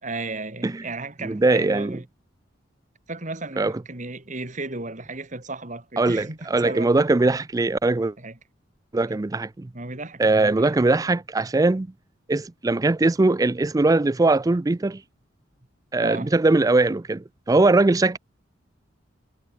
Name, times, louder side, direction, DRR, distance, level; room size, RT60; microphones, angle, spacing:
voice 1, 0.0-2.0 3.1-7.0 8.0-8.4 9.7-10.9 16.0-16.3, right 3 dB, 40° right, 2.9 m, -34 dB
voice 2, 1.2-2.0 3.6-3.7 6.0-8.1 8.9-9.7 10.2-11.9 12.3-15.0 15.9-18.2, right 2 dB, 20° right, 0.4 m, -21 dB
head